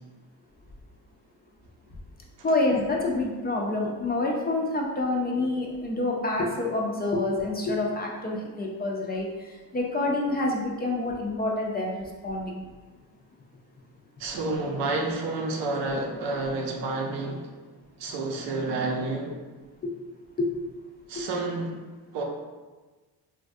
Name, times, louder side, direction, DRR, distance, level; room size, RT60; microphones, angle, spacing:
voice 1, 2.4-12.6 19.8-19.9 20.4-20.5 21.2-21.3, left 2 dB, 25° left, -1 dB, 0.4 m, -27 dB
voice 2, 14.2-17.5 18.0-19.4 21.1-21.8 22.1-22.2, right 2 dB, 85° right, 0 dB, 0.7 m, -29 dB
3.2 x 2.3 x 2.6 m, 1.3 s
cardioid pair, 90°, 42 cm